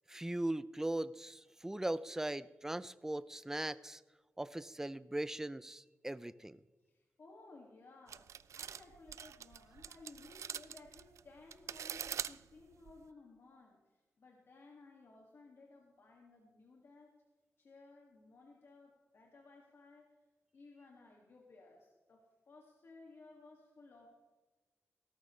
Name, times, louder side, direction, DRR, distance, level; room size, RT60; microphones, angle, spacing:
voice 1, 0.1-4.0 4.4-6.6, right 1 dB, 10° right, 15 dB, 0.4 m, -39 dB
voice 2, 6.9-17.2 17.6-20.1 20.5-24.2, left 3 dB, 55° left, -1 dB, 2.2 m, -58 dB
sound 1, 8.1-13.0, right 8 dB, 80° right, 0.4 m, -44 dB
17.5 x 13.5 x 3.2 m, 1.3 s
wide cardioid pair, 145°, 5 cm